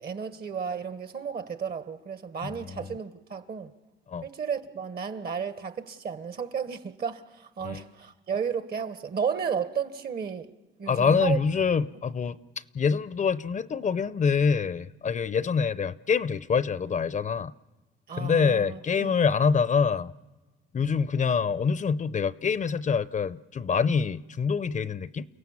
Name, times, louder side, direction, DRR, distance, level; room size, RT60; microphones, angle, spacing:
voice 1, 0.0-3.7 4.2-10.5 10.8-11.4 18.1-19.3, right 6 dB, 55° right, 1.5 m, -33 dB
voice 2, 2.4-2.9 4.1-4.2 7.6-7.8 10.9-12.4 12.7-17.5 18.2-20.1 20.7-25.3, left 6 dB, 40° left, 0.6 m, -25 dB
29.5 x 17.0 x 7.3 m
cardioid pair, 90°, 20 cm